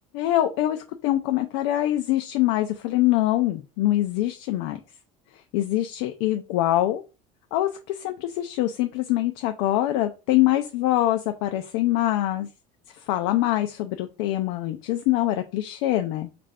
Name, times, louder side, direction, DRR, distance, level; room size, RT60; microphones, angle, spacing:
voice 1, 0.1-4.8 5.5-7.0 7.5-12.5 13.1-16.3, left 14 dB, 85° left, 6 dB, 0.4 m, -24 dB
3.2 x 2.5 x 3.4 m, 0.30 s
cardioid pair, 130°, 17 cm